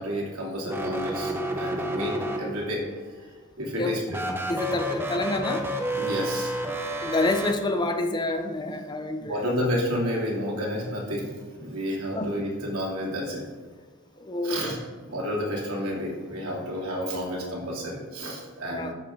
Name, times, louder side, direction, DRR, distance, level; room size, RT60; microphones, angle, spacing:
voice 1, 0.0-2.8 3.6-4.0 5.9-6.5 9.2-13.5 14.4-14.8 15.1-18.9, equal, 70° right, -3 dB, 2.9 m, -30 dB
sound 1, 0.6-2.8 4.1-7.5, right 1 dB, 10° right, 0.8 m, -30 dB
voice 2, 4.5-5.7 7.0-9.4 12.2-12.3 14.2-14.8 18.7-18.9, left 2 dB, 20° left, 6 dB, 0.5 m, -28 dB
12.5 x 6.9 x 3.8 m, 1.4 s
head